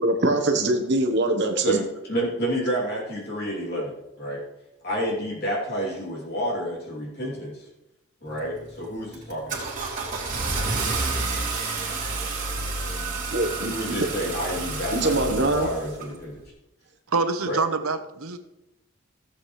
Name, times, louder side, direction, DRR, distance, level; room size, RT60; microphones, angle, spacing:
voice 1, 0.0-1.8 13.3-13.9 14.9-15.7, right 2 dB, 55° right, 4 dB, 1.1 m, -23 dB
voice 2, 1.7-4.4 4.8-7.7 8.2-9.7 13.7-16.4 17.4-17.6, right 1 dB, 50° left, -5 dB, 3.0 m, -29 dB
Car / Engine starting, 8.3-8.7 9.1-16.1, right 3 dB, 40° right, 2.5 m, -29 dB
voice 3, 17.1-18.4, right 4 dB, 90° right, 9 dB, 0.9 m, -25 dB
15.5 x 8.0 x 3.2 m, 0.92 s
head